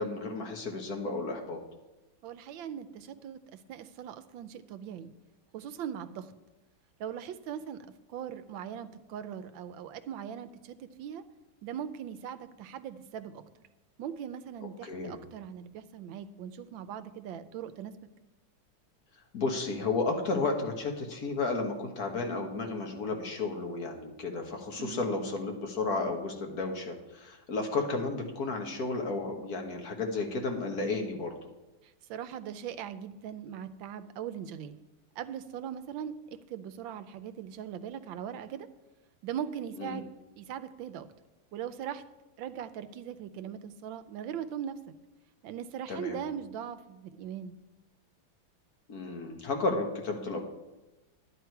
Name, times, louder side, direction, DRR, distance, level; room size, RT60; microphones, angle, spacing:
voice 1, 0.0-1.6 14.8-15.2 19.3-31.3 39.8-40.0 45.9-46.2 48.9-50.4, left 3 dB, 50° left, 3 dB, 1.7 m, -33 dB
voice 2, 2.2-3.4 3.7-5.1 5.5-6.3 7.0-7.8 8.1-11.2 11.6-13.4 14.0-18.0 24.8-25.1 32.1-34.8 35.2-38.7 39.2-40.0 40.4-41.1 41.5-42.0 42.4-44.8 45.4-47.6, right 9 dB, 75° right, 11 dB, 1.4 m, -40 dB
11.0 x 9.5 x 4.6 m, 1.0 s
omnidirectional pair, 2.2 m